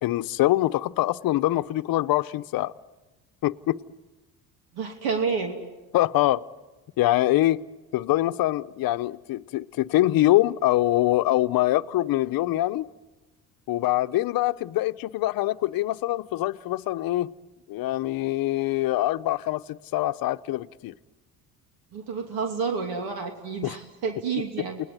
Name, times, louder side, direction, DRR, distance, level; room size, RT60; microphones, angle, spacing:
voice 1, 0.0-2.7 3.4-3.8 5.9-6.4 7.0-7.6 7.9-12.9 13.7-17.3 17.7-20.9 23.6-23.8, left 15 dB, 65° left, 0.8 m, -24 dB
voice 2, 4.7-5.6 21.9-24.8, right 5 dB, 70° right, 2.8 m, -29 dB
29.0 x 20.0 x 9.6 m
cardioid pair, 105°, 38 cm